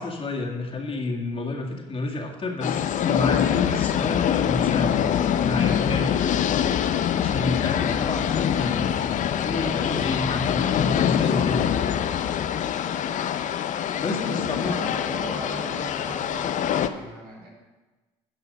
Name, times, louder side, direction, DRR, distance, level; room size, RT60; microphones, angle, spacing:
voice 1, 0.0-5.0 5.4-6.1 7.2-8.9 9.3-11.7 14.0-14.8, left 2 dB, 35° left, 1 dB, 2.0 m, -29 dB
sound 1, 2.6-16.9, left 9 dB, 50° left, 0.6 m, -24 dB
voice 2, 7.1-7.5 12.9-13.1 14.2-17.5, right 2 dB, 75° right, -2 dB, 2.8 m, -39 dB
10.5 x 5.6 x 5.3 m, 1.2 s
hypercardioid pair, 65°, 16 cm